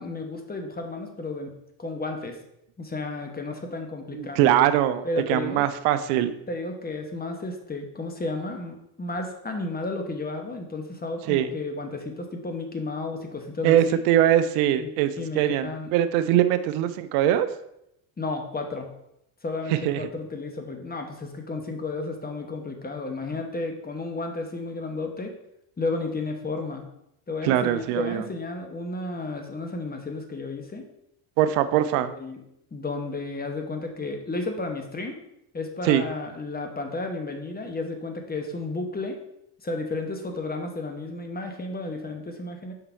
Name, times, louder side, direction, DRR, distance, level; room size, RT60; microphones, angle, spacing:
voice 1, 0.0-1.5 1.8-2.4 2.8-4.5 5.0-5.6 6.5-13.8 14.8-14.9 15.2-15.9 18.2-18.9 19.4-25.3 25.8-26.8 27.3-30.9 32.1-32.4 32.7-35.2 35.5-39.2 39.6-42.7, left 3 dB, 20° left, 4 dB, 1.1 m, -32 dB
voice 2, 4.1-6.3 11.3-11.5 13.6-17.5 19.7-20.1 27.4-28.2 31.4-32.1 35.8-36.0, right 11 dB, 80° right, 12 dB, 0.6 m, -22 dB
5.5 x 3.9 x 4.4 m, 0.79 s
supercardioid pair, 85°, 50 cm